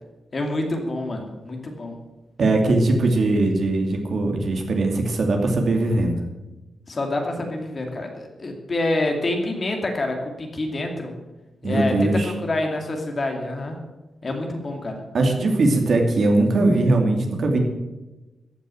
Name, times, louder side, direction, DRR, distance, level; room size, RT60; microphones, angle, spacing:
voice 1, 0.3-2.0 6.9-11.1 11.6-13.8 14.2-15.0, left 2 dB, 35° left, 3 dB, 2.5 m, -27 dB
voice 2, 2.4-6.2 11.6-12.4 15.1-17.6, right 2 dB, 55° right, 2 dB, 2.6 m, -20 dB
14.5 x 6.7 x 9.2 m, 1.1 s
wide cardioid pair, 150°, 0 cm